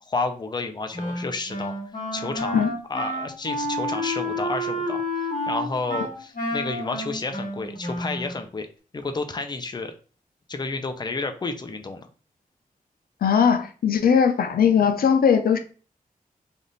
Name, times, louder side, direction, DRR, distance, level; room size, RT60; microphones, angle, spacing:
voice 1, 0.1-1.7 2.1-2.6 2.9-8.7 8.9-9.9 10.5-12.0, left 3 dB, 30° left, 7 dB, 0.5 m, -31 dB
Wind instrument woodwind instrument, 0.9-8.4, equal, 65° left, 1.7 m, -30 dB
voice 2, 13.2-15.6, left 7 dB, 90° left, 8 dB, 0.5 m, -19 dB
3.5 x 2.4 x 3.9 m, 0.39 s
wide cardioid pair, 95°, 15 cm